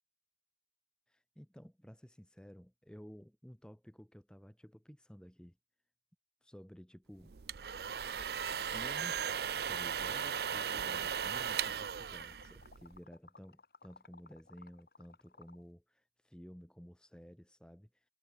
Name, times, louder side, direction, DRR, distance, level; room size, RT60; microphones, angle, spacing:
voice 1, 1.1-5.6 6.4-7.6 8.7-9.3 9.7-18.0, equal, 5° left, 1.3 m, -54 dB
sound 1, 7.3-13.0, right 8 dB, 65° right, 0.5 m, -37 dB
Liquid, 7.6-15.6, left 3 dB, 55° left, 1.9 m, -58 dB
head